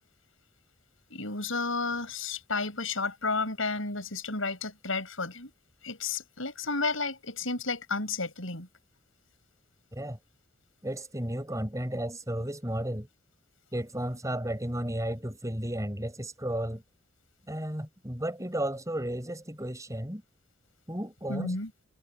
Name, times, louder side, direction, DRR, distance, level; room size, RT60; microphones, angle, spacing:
voice 1, 1.1-5.5 5.8-8.7 21.3-21.7, left 3 dB, 75° left, 7.9 m, -32 dB
voice 2, 10.8-13.1 13.7-16.8 17.5-20.2 20.9-21.6, right 1 dB, 15° right, 5.4 m, -33 dB
head